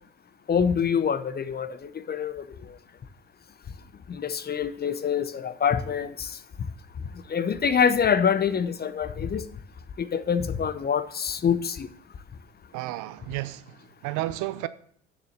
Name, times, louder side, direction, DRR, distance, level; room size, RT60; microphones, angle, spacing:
voice 1, 0.5-1.7 2.1-2.4 4.1-6.3 7.3-9.4 10.0-11.9, left 7 dB, 25° left, 0.8 m, -25 dB
voice 2, 12.7-14.7, right 17 dB, 60° right, 0.7 m, -32 dB
7.3 x 6.7 x 6.7 m
hypercardioid pair, 60°, 35 cm